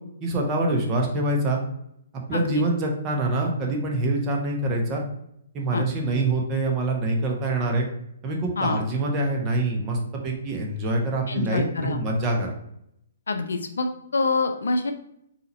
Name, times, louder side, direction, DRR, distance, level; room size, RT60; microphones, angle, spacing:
voice 1, 0.2-1.6 2.3-5.0 5.5-7.9 8.2-12.6, right 2 dB, 25° right, 0 dB, 1.0 m, -25 dB
voice 2, 2.3-2.6 5.7-5.9 8.6-8.8 11.3-12.0 13.3-14.9, left 3 dB, 75° left, 7 dB, 0.5 m, -26 dB
3.9 x 2.8 x 4.2 m, 0.75 s
figure-of-eight pair, 130°, 0 cm